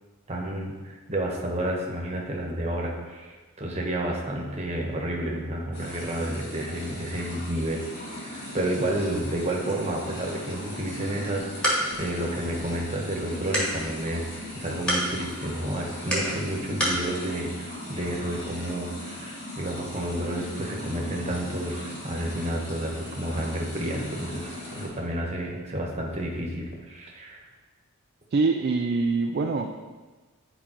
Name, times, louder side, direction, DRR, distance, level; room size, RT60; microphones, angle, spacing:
voice 1, 0.3-27.4, right 1 dB, 30° right, -1 dB, 1.1 m, -31 dB
sound 1, 5.7-24.9, left 1 dB, 50° left, 2.0 m, -39 dB
sound 2, 11.3-17.0, equal, 5° left, 1.5 m, -31 dB
voice 2, 28.3-29.7, right 3 dB, 45° right, 3 dB, 0.3 m, -24 dB
10.0 x 4.9 x 3.0 m, 1.3 s
head